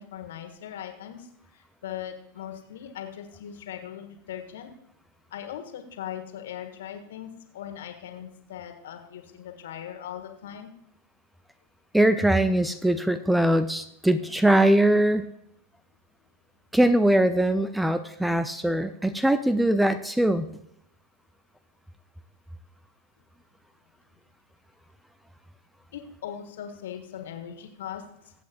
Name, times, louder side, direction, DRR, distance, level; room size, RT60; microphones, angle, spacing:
voice 1, 0.0-4.7 5.3-10.7 25.9-28.3, left 10 dB, 60° left, 6 dB, 1.5 m, -39 dB
voice 2, 11.9-15.3 16.7-20.5, right 1 dB, 5° right, 12 dB, 0.5 m, -21 dB
22.5 x 8.3 x 2.5 m, 0.79 s
figure-of-eight pair, 90°, 0 cm